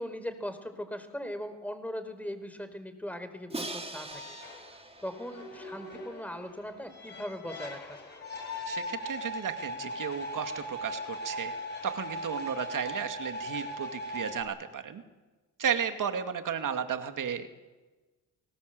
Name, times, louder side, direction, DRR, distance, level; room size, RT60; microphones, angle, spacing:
voice 1, 0.0-4.2 4.7-8.0, equal, 5° left, 9 dB, 4.0 m, -39 dB
Crash cymbal, 3.5-6.5, right 2 dB, 15° right, 2.7 m, -42 dB
sound 1, 4.1-14.4, equal, 30° left, 7.8 m, -39 dB
voice 2, 8.7-11.5 11.8-15.0 15.6-17.5, right 7 dB, 60° right, 8 dB, 2.4 m, -34 dB
30.0 x 18.5 x 7.9 m, 1.2 s
cardioid pair, 75°, 35 cm